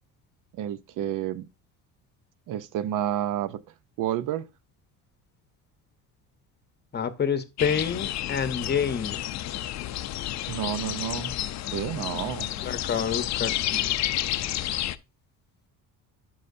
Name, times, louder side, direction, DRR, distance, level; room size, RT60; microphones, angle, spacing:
voice 1, 0.5-1.5 2.5-3.6 4.0-4.5 10.5-11.3 11.7-12.6, right 11 dB, 60° right, 0.7 m, -30 dB
voice 2, 6.9-9.2 12.6-14.0, left 7 dB, 30° left, 0.9 m, -28 dB
sound 1, 7.6-15.0, left 13 dB, 50° left, 0.5 m, -30 dB
12.0 x 5.6 x 2.6 m
cardioid pair, 120°, 35 cm